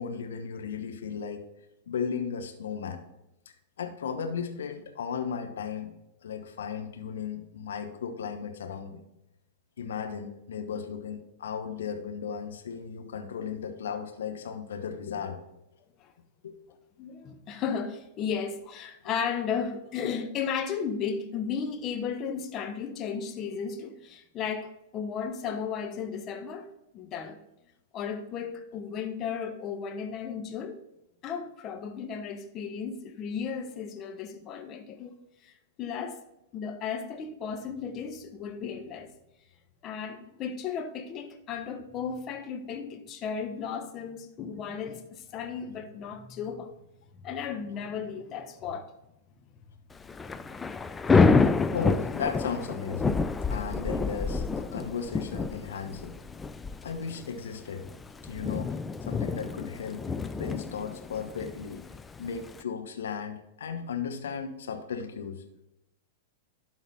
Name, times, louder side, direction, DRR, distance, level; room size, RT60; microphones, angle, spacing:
voice 1, 0.0-1.4 1.9-3.0 3.8-6.0 6.2-9.0 9.8-15.4 16.4-16.6 51.1-51.3 51.7-53.2 53.5-56.2 56.8-57.8 58.2-61.8 62.2-65.4, left 6 dB, 70° left, 1.0 m, -35 dB
voice 2, 17.0-26.7 26.9-27.4 27.9-30.8 31.2-35.2 35.4-36.2 36.5-39.1 39.8-46.7 47.1-48.9, left 6 dB, 35° left, 1.0 m, -35 dB
Thunder / Rain, 50.0-62.6, left 4 dB, 15° left, 0.4 m, -28 dB
12.0 x 4.0 x 4.1 m
figure-of-eight pair, 100°, 0 cm